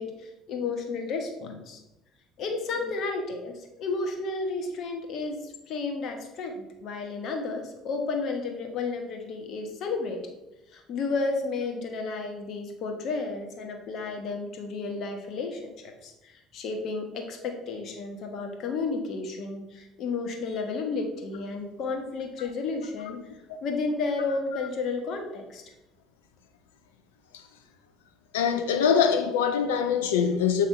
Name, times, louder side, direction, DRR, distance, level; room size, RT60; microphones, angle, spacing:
voice 1, 0.0-1.8 2.4-10.2 10.7-23.2 23.6-25.6, left 3 dB, 50° left, 1.1 m, -32 dB
voice 2, 28.3-30.7, left 7 dB, 70° left, 0.5 m, -23 dB
7.1 x 5.4 x 3.2 m
figure-of-eight pair, 55°, 0 cm